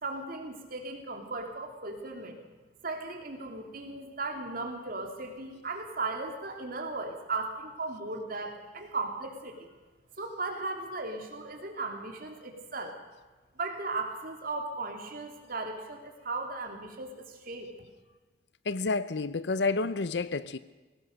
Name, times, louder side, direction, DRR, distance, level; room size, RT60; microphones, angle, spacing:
voice 1, 0.0-2.4 2.8-9.7 10.2-13.0 13.6-17.7, right 3 dB, 50° right, 3 dB, 3.1 m, -37 dB
voice 2, 18.7-20.6, left 3 dB, 65° left, 15 dB, 0.6 m, -29 dB
22.0 x 18.0 x 6.7 m, 1.2 s
head